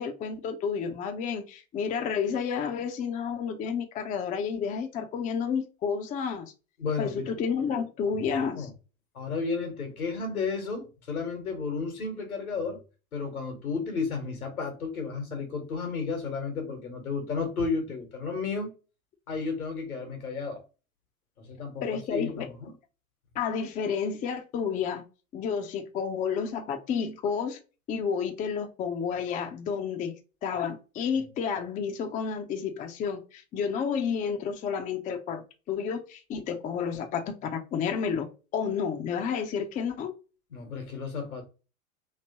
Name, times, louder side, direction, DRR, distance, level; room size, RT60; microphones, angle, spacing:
voice 1, 0.0-6.5 7.0-8.7 21.8-22.5 23.3-25.0 25.3-27.6 27.9-30.2 30.4-38.3 38.5-40.1, left 6 dB, 20° left, 0.5 m, -30 dB
voice 2, 6.8-7.3 8.2-8.7 9.1-12.8 13.1-18.7 19.3-20.6 21.4-22.7 40.5-41.4, left 4 dB, 85° left, 1.3 m, -33 dB
3.1 x 2.8 x 2.8 m
figure-of-eight pair, 90°, 42 cm